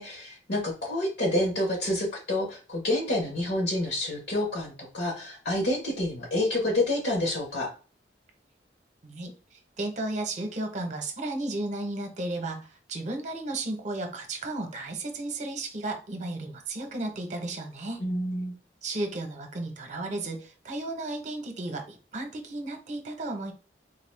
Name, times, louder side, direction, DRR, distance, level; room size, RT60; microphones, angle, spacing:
voice 1, 0.0-7.7 18.0-18.5, left 1 dB, 65° left, 0 dB, 1.3 m, -28 dB
voice 2, 9.0-18.0 18.8-23.5, right 2 dB, 40° right, 4 dB, 0.8 m, -34 dB
3.9 x 2.3 x 3.3 m, 0.35 s
head